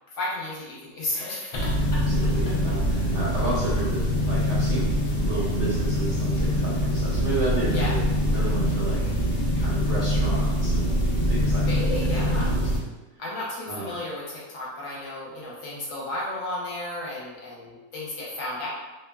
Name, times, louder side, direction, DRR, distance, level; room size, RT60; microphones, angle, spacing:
voice 1, 0.1-2.3 7.7-7.9 11.6-12.5 13.2-18.7, left 2 dB, 55° left, -6 dB, 1.0 m, -33 dB
sound 1, 1.5-12.8, equal, 85° left, 0.5 m, -24 dB
voice 2, 2.1-5.0 5.2-8.0 8.3-11.0 11.3-11.8 12.1-12.7 13.1-13.2 13.7-14.0, right 2 dB, 65° right, -7 dB, 0.7 m, -32 dB
2.8 x 2.2 x 2.2 m, 1.1 s
omnidirectional pair, 1.6 m